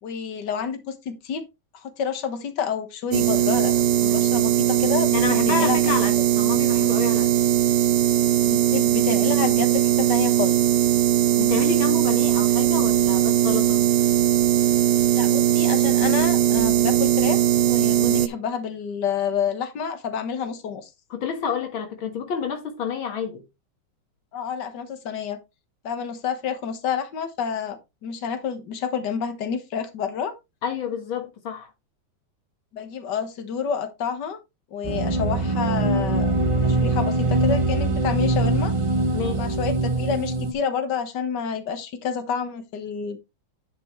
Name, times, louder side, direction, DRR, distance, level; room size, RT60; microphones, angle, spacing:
voice 1, 0.0-1.5 1.7-5.2 5.5-5.8 8.5-10.6 15.1-20.9 24.3-25.4 25.8-30.3 32.7-34.4 34.7-36.3 36.6-38.7 39.3-43.2, left 6 dB, 60° left, 1.9 m, -29 dB
sound 1, 3.1-18.3, right 11 dB, 80° right, 1.5 m, -20 dB
voice 2, 5.1-7.3 11.4-13.8 21.1-23.4 30.6-31.7 39.1-39.5, left 7 dB, 85° left, 2.4 m, -29 dB
sound 2, 34.8-40.5, right 2 dB, 40° right, 0.4 m, -22 dB
10.5 x 6.1 x 3.1 m
omnidirectional pair, 2.1 m